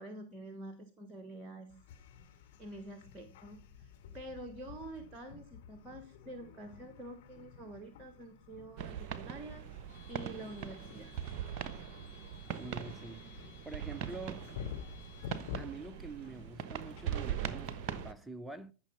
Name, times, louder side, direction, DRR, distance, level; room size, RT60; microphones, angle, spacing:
voice 1, 0.0-1.8 2.6-9.7 10.1-11.2, right 1 dB, 20° right, 1.5 m, -47 dB
sound 1, 1.7-18.1, left 8 dB, 50° left, 2.7 m, -51 dB
sound 2, 8.7-16.4, right 1 dB, 30° left, 4.6 m, -66 dB
sound 3, 8.8-18.1, right 9 dB, 40° right, 1.1 m, -41 dB
voice 2, 12.6-14.5 15.6-18.7, right 3 dB, 5° right, 0.6 m, -46 dB
15.0 x 6.4 x 5.5 m
figure-of-eight pair, 90°, 0 cm